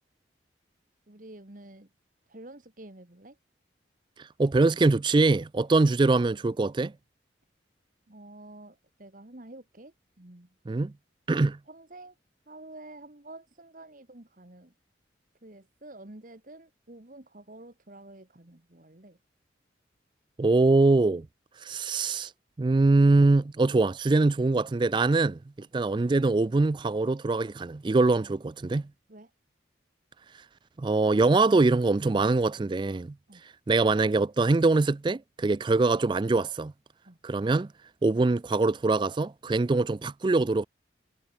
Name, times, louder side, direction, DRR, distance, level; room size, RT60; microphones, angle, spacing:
voice 1, 1.1-1.9 2.3-3.4 8.1-10.5 11.7-12.2 12.5-14.7 15.4-19.2 25.6-25.7 29.1-29.3 33.3-33.4 37.0-37.2, right 2 dB, 45° right, 1.6 m, -49 dB
voice 2, 4.4-6.9 10.7-10.9 11.3-11.6 20.4-21.3 21.6-22.3 22.6-28.9 30.8-33.1 33.7-36.7 37.2-37.7 38.0-40.6, right 3 dB, 25° right, 0.3 m, -23 dB
head